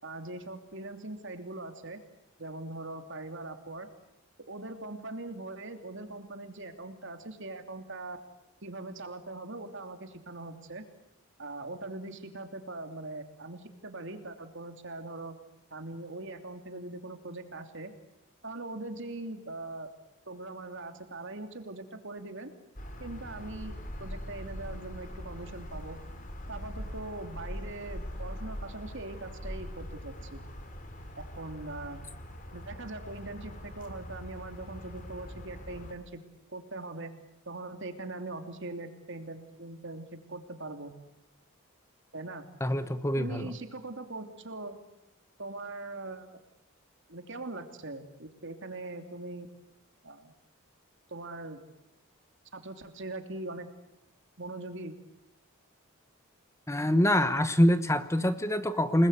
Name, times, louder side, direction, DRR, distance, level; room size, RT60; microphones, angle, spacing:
voice 1, 0.0-2.0 2.4-3.9 4.5-8.2 8.6-10.8 11.4-15.3 15.7-17.9 18.4-19.9 20.3-22.5 23.0-23.7 24.0-26.0 26.5-30.4 31.2-32.0 32.5-36.2 36.5-37.1 37.4-40.9 42.1-42.5 43.1-44.8 45.4-46.2 47.1-49.5 50.0-50.3 51.1-51.6 52.5-53.7 54.4-54.9, right 2 dB, 55° right, 7 dB, 3.0 m, -41 dB
sound 1, 22.8-35.9, equal, 35° left, 3.7 m, -42 dB
voice 2, 42.6-43.5 56.7-59.1, left 1 dB, 15° left, 11 dB, 1.0 m, -25 dB
29.5 x 20.5 x 8.2 m, 0.92 s
head